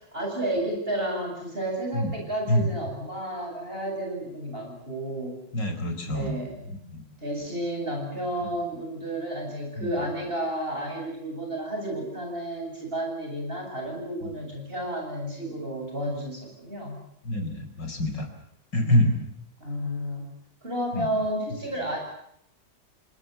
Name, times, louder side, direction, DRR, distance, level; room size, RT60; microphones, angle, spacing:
voice 1, 0.0-5.4 6.1-6.6 7.2-17.0 19.6-20.3 20.6-22.0, right 1 dB, 30° right, 1 dB, 8.3 m, -31 dB
voice 2, 5.5-6.3 6.9-7.0 9.8-10.0 17.2-18.3 18.7-19.2 20.9-21.1, left 1 dB, 65° left, 6 dB, 5.0 m, -25 dB
29.5 x 19.5 x 8.2 m, 0.71 s
omnidirectional pair, 2.1 m